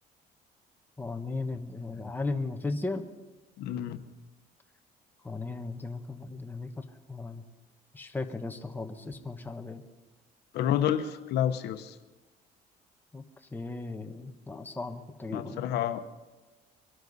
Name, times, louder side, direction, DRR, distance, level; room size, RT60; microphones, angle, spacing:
voice 1, 1.0-3.0 5.2-6.8 7.1-7.4 7.9-9.8 13.1-13.2 13.5-15.6, left 3 dB, 10° left, 5 dB, 1.2 m, -36 dB
voice 2, 3.6-4.0 10.5-12.0 15.3-16.0, left 10 dB, 75° left, 9 dB, 0.9 m, -29 dB
23.0 x 12.5 x 4.1 m, 1.2 s
cardioid pair, 110°, 17 cm